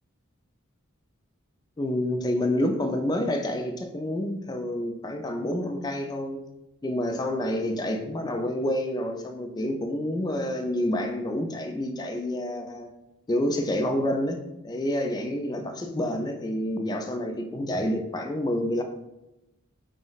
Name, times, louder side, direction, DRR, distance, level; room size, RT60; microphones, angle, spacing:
voice 1, 1.8-6.4 6.8-12.9 13.3-18.8, left 1 dB, 20° left, 5 dB, 0.3 m, -28 dB
4.9 x 2.0 x 3.9 m, 0.93 s
head